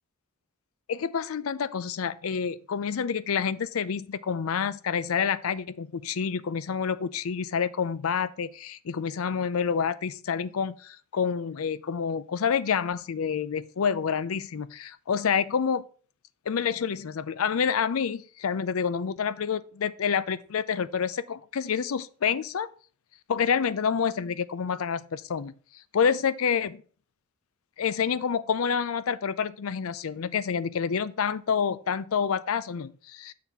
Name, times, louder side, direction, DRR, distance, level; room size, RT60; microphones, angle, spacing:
voice 1, 0.9-15.8 16.5-22.7 23.3-26.8 27.8-33.3, left 6 dB, 80° left, 0.5 m, -28 dB
6.8 x 4.1 x 5.7 m
head